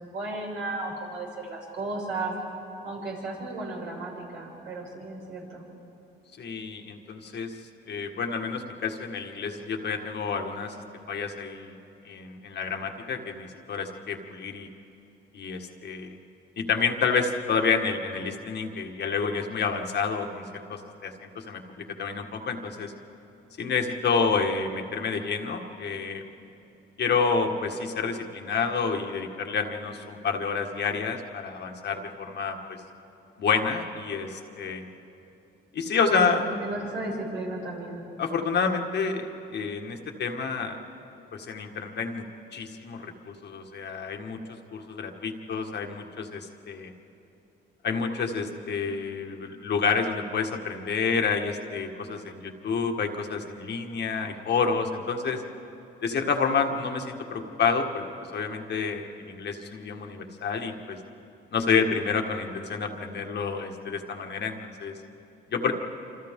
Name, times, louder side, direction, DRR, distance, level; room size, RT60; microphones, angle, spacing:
voice 1, 0.0-2.3 2.8-5.6 36.0-38.0, right 2 dB, 80° right, -4 dB, 6.6 m, -34 dB
voice 2, 6.4-7.5 7.9-10.8 11.1-11.8 12.0-14.7 15.3-16.1 16.6-22.9 23.6-26.2 27.0-32.8 33.4-34.9 35.7-36.4 38.2-40.8 41.3-42.2 42.5-44.4 44.7-46.9 47.8-55.4 56.0-58.0 58.3-61.0 61.5-64.9 65.5-65.7, left 5 dB, 60° left, 3 dB, 1.7 m, -29 dB
27.0 x 26.5 x 3.7 m, 2.8 s
cardioid pair, 90°, 20 cm